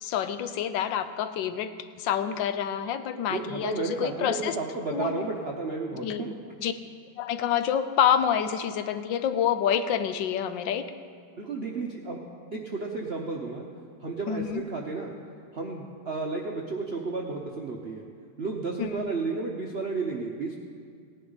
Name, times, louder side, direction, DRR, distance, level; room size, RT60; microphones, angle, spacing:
voice 1, 0.0-1.7 2.0-4.5 4.9-5.1 6.0-6.7 7.2-10.9 14.3-14.6 18.8-18.9, left 9 dB, 75° left, 11 dB, 1.3 m, -27 dB
voice 2, 3.3-6.3 11.4-12.2 12.5-13.6 14.0-15.2 15.5-18.1 18.4-20.5, right 3 dB, 50° right, -1 dB, 0.7 m, -32 dB
17.5 x 10.5 x 4.0 m, 2.2 s
omnidirectional pair, 2.1 m